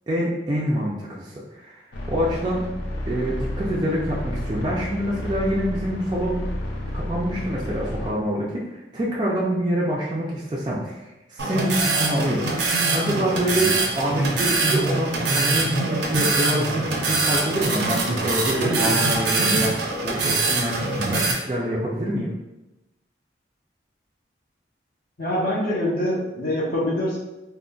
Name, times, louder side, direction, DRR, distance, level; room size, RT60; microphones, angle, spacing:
voice 1, 0.1-2.7 3.1-6.4 6.9-12.5 12.9-22.3, right 1 dB, 25° right, -6 dB, 0.3 m, -26 dB
sound 1, 1.9-8.1, left 1 dB, 85° left, 0.5 m, -31 dB
sound 2, 11.4-21.3, right 3 dB, 75° right, 0.5 m, -23 dB
voice 2, 25.2-27.2, left 1 dB, 50° left, -6 dB, 0.9 m, -24 dB
3.7 x 2.1 x 2.3 m, 1.0 s
head